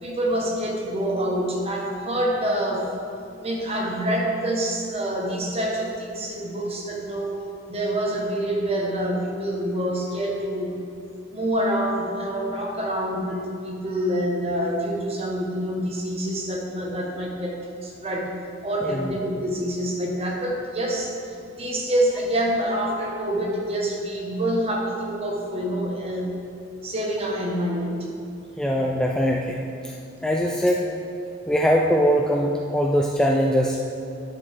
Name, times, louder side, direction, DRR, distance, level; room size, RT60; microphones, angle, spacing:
voice 1, 0.0-3.1 3.4-7.4 7.7-10.8 11.3-18.3 18.6-21.1 21.5-26.4 26.8-28.1, right 1 dB, 30° right, -1 dB, 1.2 m, -26 dB
voice 2, 28.6-29.6 30.2-30.8 31.5-34.0, equal, 5° left, -1 dB, 0.3 m, -21 dB
10.0 x 6.6 x 3.4 m, 2.5 s
head